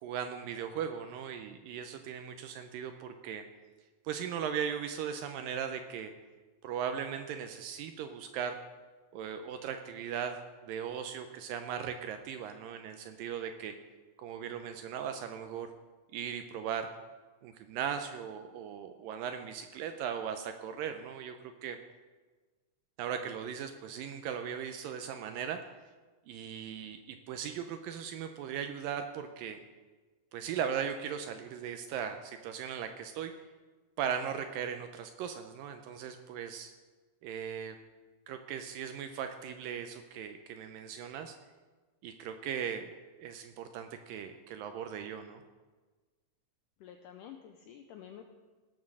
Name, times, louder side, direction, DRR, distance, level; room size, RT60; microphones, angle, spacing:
voice 1, 0.0-3.4 4.1-6.1 6.6-8.6 9.1-10.4 10.6-13.7 14.2-15.7 16.1-16.9 17.4-21.4 21.6-21.8 23.0-25.6 26.3-29.6 30.3-33.3 34.0-36.7 37.2-37.8 38.3-41.3 42.0-42.9 43.2-45.4, right 8 dB, 80° right, 7 dB, 2.1 m, -38 dB
voice 2, 46.8-48.2, left 9 dB, 85° left, 5 dB, 1.8 m, -49 dB
17.5 x 6.1 x 6.4 m, 1.3 s
omnidirectional pair, 4.5 m